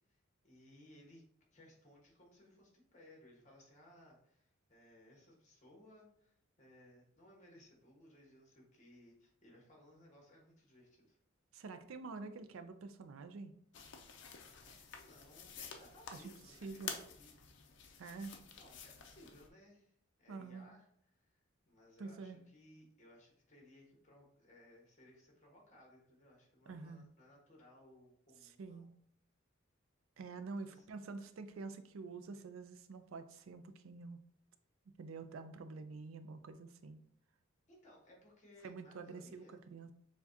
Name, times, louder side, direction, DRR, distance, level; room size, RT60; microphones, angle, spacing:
voice 1, 0.1-1.2 1.5-11.2 14.3-17.5 18.6-19.9 20.2-28.9 30.7-30.9 37.7-39.6, left 1 dB, 35° left, -1 dB, 1.3 m, -62 dB
voice 2, 11.5-13.5 16.1-16.2 16.6-16.9 18.0-18.3 20.3-20.7 22.0-22.4 26.7-27.1 28.6-28.9 30.2-34.2 34.9-37.0 38.6-39.9, right 4 dB, 85° right, 9 dB, 0.4 m, -47 dB
sound 1, 13.7-19.5, left 6 dB, 60° left, 0.5 m, -50 dB
6.9 x 2.3 x 2.7 m, 0.67 s
head